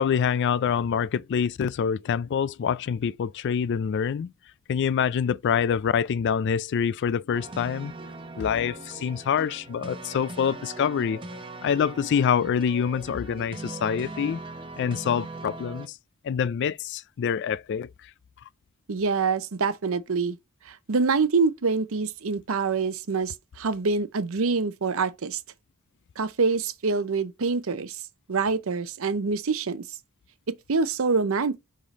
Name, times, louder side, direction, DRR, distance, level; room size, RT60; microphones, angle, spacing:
voice 1, 0.0-4.3 4.7-7.9 8.4-11.2 11.6-14.4 14.8-16.0 16.2-17.9, left 7 dB, 55° left, 0.3 m, -26 dB
sound 1, 7.3-15.9, right 2 dB, 25° right, 1.0 m, -40 dB
voice 2, 18.9-20.4 20.7-25.4 26.2-28.0 28.3-29.8 30.5-31.6, right 4 dB, 65° right, 0.7 m, -25 dB
5.6 x 5.0 x 4.1 m
head